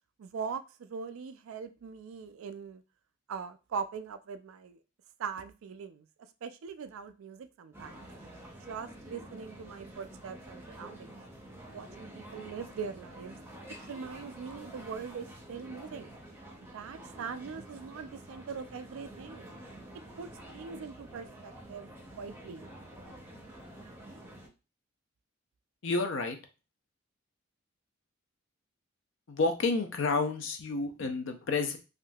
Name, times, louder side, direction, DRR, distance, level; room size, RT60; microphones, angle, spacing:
voice 1, 0.2-2.8 3.3-4.8 5.2-6.1 6.4-8.1 8.6-11.2 11.7-13.4 13.9-16.1 16.6-19.5 20.2-20.3 20.5-21.9 22.2-22.6, right 6 dB, 75° right, 10 dB, 0.3 m, -41 dB
sound 1, 7.7-24.5, right 1 dB, 10° right, 0.6 m, -48 dB
voice 2, 25.8-26.4 29.3-31.8, left 3 dB, 60° left, 6 dB, 0.5 m, -30 dB
3.5 x 2.6 x 2.3 m, 0.31 s
head